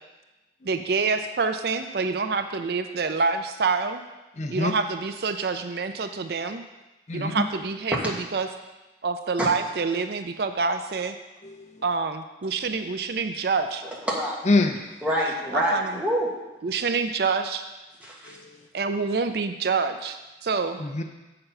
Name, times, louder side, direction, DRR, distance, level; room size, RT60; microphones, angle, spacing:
voice 1, 0.6-4.0 4.5-6.6 7.1-8.5 9.0-11.2 11.8-13.8 15.5-16.0 16.6-17.6 18.7-20.8, right 4 dB, 60° right, 8 dB, 0.5 m, -27 dB
voice 2, 4.4-4.7 7.1-7.4 11.4-11.8 14.4-14.8 18.2-18.6 20.8-21.0, left 2 dB, 40° left, 5 dB, 0.6 m, -25 dB
voice 3, 14.1-14.4 15.0-16.3 18.0-18.4, equal, 10° right, -4 dB, 1.6 m, -26 dB
7.7 x 6.9 x 5.6 m, 1.1 s
head